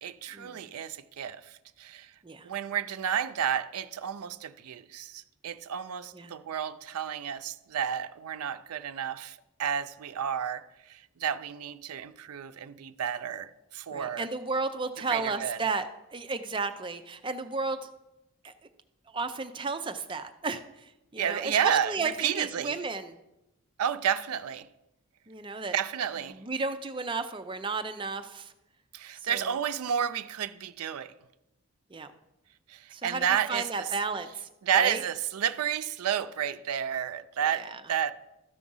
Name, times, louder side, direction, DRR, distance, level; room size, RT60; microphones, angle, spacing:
voice 1, 0.0-2.1 2.4-14.3 15.1-15.6 21.2-22.8 23.8-24.7 25.7-26.4 28.9-31.1 32.7-33.7 34.6-38.1, right 9 dB, 85° right, 0.4 m, -31 dB
voice 2, 13.9-17.9 18.4-18.5 19.1-23.2 25.3-25.7 26.3-28.5 29.3-29.5 31.9-32.1 32.9-34.5 34.7-35.0 37.4-37.8, right 4 dB, 20° right, 0.4 m, -33 dB
13.0 x 4.9 x 5.4 m
head